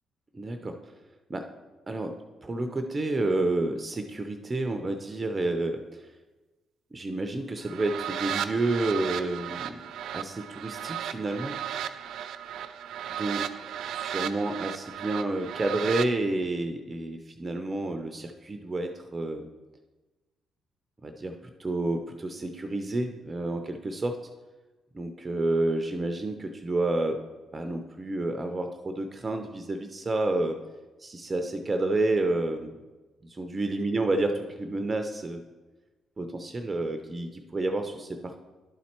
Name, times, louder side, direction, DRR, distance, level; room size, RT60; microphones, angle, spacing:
voice 1, 0.3-0.9 1.3-1.5 1.9-6.1 6.9-9.8 10.1-11.5 13.2-13.4 13.9-19.5 21.0-21.3 21.6-24.2 24.9-27.2 27.5-30.6 31.0-32.7 33.2-34.3 34.6-35.4 36.2-38.4, right 2 dB, 25° right, 5 dB, 0.6 m, -30 dB
sound 1, 7.6-16.1, right 9 dB, 80° right, 0.4 m, -35 dB
11.0 x 4.2 x 4.4 m, 1.2 s
cardioid pair, 90°, 0 cm